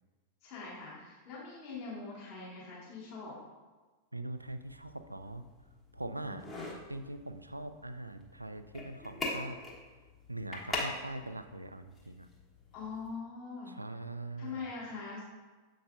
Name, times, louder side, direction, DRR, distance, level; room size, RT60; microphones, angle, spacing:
voice 1, 0.4-3.4 6.2-6.7 12.7-13.8 14.4-15.2, left 4 dB, 40° left, -7 dB, 2.0 m, -43 dB
voice 2, 4.1-5.5 5.9-6.5 6.9-9.6 10.3-12.3 13.7-14.6, right 2 dB, 85° right, 10 dB, 0.3 m, -42 dB
sound 1, 4.4-13.2, left 2 dB, 15° left, 1.1 m, -43 dB
7.6 x 5.5 x 2.5 m, 1.3 s
figure-of-eight pair, 90°, 0 cm